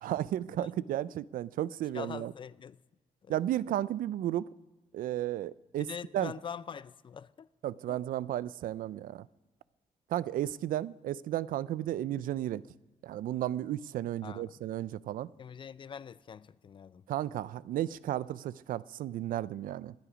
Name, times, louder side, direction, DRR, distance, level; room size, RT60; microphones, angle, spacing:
voice 1, 0.0-2.3 3.3-4.4 4.9-5.9 6.1-6.3 7.6-9.3 10.1-12.6 13.0-15.3 17.1-19.9, right 12 dB, 90° right, 0.4 m, -33 dB
voice 2, 1.9-2.8 3.2-3.4 5.8-7.5 7.9-8.0 14.2-14.5 15.4-17.0, left 7 dB, 35° left, 0.4 m, -44 dB
26.0 x 9.9 x 5.1 m
cardioid pair, 135°, 14 cm